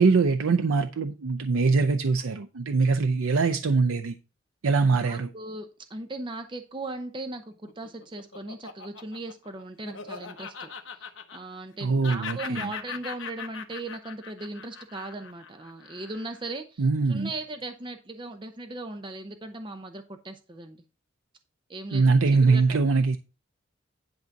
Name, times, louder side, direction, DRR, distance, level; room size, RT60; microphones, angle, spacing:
voice 1, 0.0-4.1 4.6-5.3 11.8-12.7 16.8-17.3 21.9-23.2, right 4 dB, 90° right, 0.6 m, -22 dB
voice 2, 4.9-20.8 21.7-22.0 22.4-22.8, right 2 dB, 25° right, 0.7 m, -38 dB
Laughter, 7.5-11.8 12.0-16.5, left 6 dB, 60° left, 1.1 m, -40 dB
10.5 x 4.0 x 5.9 m
head